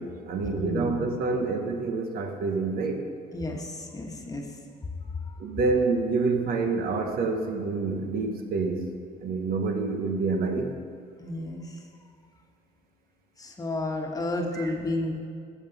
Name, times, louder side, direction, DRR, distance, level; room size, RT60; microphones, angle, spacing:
voice 1, 0.0-3.1 5.4-8.9 9.2-10.7 14.5-14.7, right 4 dB, 60° right, 5 dB, 1.0 m, -27 dB
voice 2, 0.5-1.0 3.3-4.4 5.3-5.4 11.2-11.8 13.4-15.1, left 2 dB, 20° left, 1 dB, 1.3 m, -31 dB
14.0 x 7.3 x 4.0 m, 2.1 s
cardioid pair, 110°, 17 cm